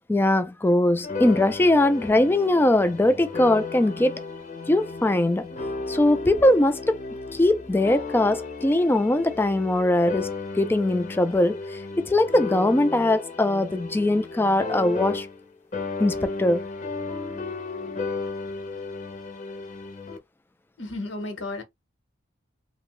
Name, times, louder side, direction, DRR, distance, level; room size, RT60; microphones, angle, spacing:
voice 1, 0.1-4.2 4.7-5.5 5.9-7.0 7.3-15.3 16.0-16.6, left 1 dB, 10° left, 0.3 m, -21 dB
sound 1, 1.0-15.5 15.7-20.2, left 4 dB, 40° left, 0.7 m, -34 dB
voice 2, 20.8-21.6, left 2 dB, 80° left, 1.0 m, -33 dB
2.7 x 2.1 x 3.0 m
head